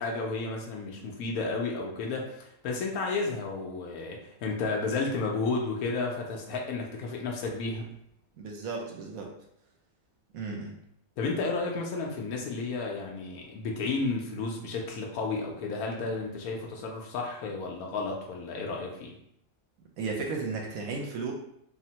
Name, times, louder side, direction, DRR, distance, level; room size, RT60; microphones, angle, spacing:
voice 1, 0.0-7.9 11.2-19.1, left 3 dB, 90° left, 0 dB, 1.1 m, -32 dB
voice 2, 8.4-9.3 10.3-10.8 20.0-21.3, right 4 dB, 80° right, 0 dB, 1.1 m, -34 dB
3.5 x 2.0 x 2.8 m, 0.73 s
omnidirectional pair, 1.5 m